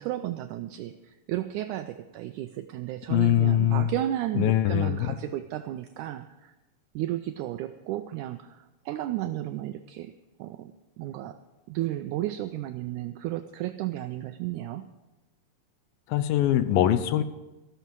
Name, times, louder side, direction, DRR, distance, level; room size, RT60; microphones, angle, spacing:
voice 1, 0.0-6.6 7.0-10.1 10.4-10.7 11.0-11.4 11.7-14.9, right 13 dB, 85° right, 10 dB, 1.7 m, -33 dB
voice 2, 3.1-3.9 4.4-5.1 16.1-17.2, left 12 dB, 85° left, 13 dB, 2.4 m, -22 dB
14.5 x 12.5 x 4.7 m, 1.1 s
omnidirectional pair, 4.1 m